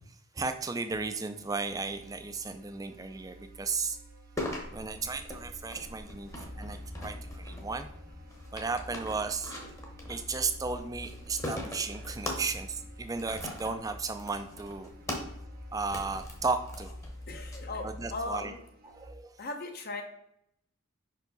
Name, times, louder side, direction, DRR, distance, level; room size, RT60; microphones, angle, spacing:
voice 1, 0.1-4.0 4.7-7.9 8.5-9.5 10.1-14.9 15.7-16.9 17.8-18.5 18.9-19.4, right 4 dB, 15° right, 8 dB, 0.4 m, -35 dB
sound 1, 0.9-19.1, equal, 40° right, 0.7 m, -47 dB
sound 2, 4.4-17.6, left 1 dB, 15° left, 0.9 m, -42 dB
voice 2, 17.3-18.6 19.4-20.0, left 3 dB, 45° left, 3 dB, 0.6 m, -38 dB
5.5 x 4.5 x 4.0 m, 0.75 s
head